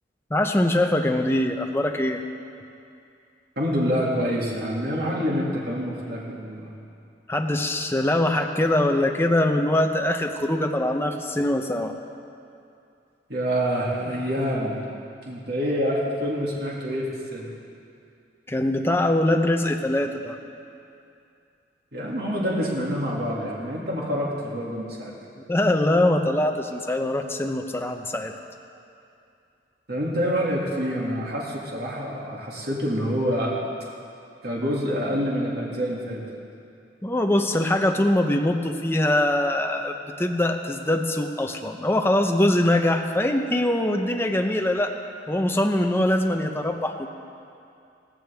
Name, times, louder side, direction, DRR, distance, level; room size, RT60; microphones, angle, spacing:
voice 1, 0.3-2.2 7.3-12.0 18.5-20.4 25.5-28.3 37.0-44.9 45.3-47.1, left 1 dB, 15° left, 4 dB, 0.7 m, -23 dB
voice 2, 3.6-6.7 13.3-14.8 15.2-17.1 17.3-17.5 21.9-25.1 29.9-33.5 34.4-36.2, equal, 60° right, -4 dB, 2.3 m, -26 dB
17.0 x 15.5 x 3.5 m, 2.5 s
head